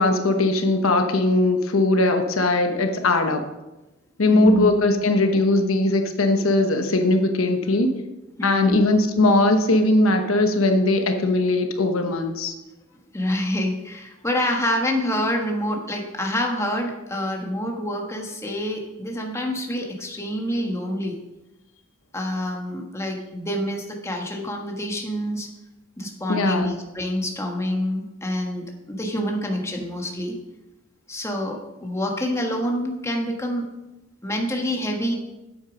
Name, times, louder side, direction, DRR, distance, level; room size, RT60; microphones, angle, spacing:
voice 1, 0.0-3.4 4.2-7.9 8.4-12.5 26.3-26.7, left 2 dB, 80° left, 6 dB, 1.0 m, -20 dB
voice 2, 4.3-4.7 5.3-5.4 8.4-8.8 13.1-21.2 22.1-25.5 26.0-30.4 31.1-33.6 34.2-35.1, equal, 15° left, 1 dB, 1.4 m, -27 dB
8.4 x 8.4 x 5.1 m, 1.0 s
head